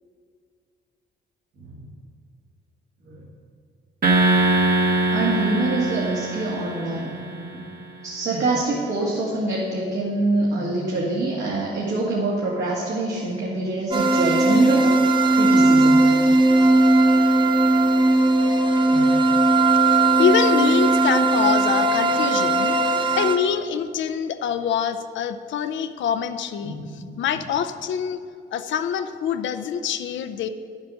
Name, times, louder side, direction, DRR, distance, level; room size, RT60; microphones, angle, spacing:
sound 1, 4.0-7.5, right 2 dB, 50° right, 1.5 m, -22 dB
voice 1, 5.1-7.1 7.5-7.6 8.0-16.0 18.9-19.1 26.6-27.0, right 2 dB, 65° right, -5 dB, 2.0 m, -25 dB
sound 2, 13.9-23.4, right 2 dB, 25° right, 0.8 m, -18 dB
voice 2, 19.8-28.2 28.5-30.5, left 8 dB, 70° left, 9 dB, 0.6 m, -25 dB
10.5 x 7.4 x 6.3 m, 2.2 s
cardioid pair, 90°, 20 cm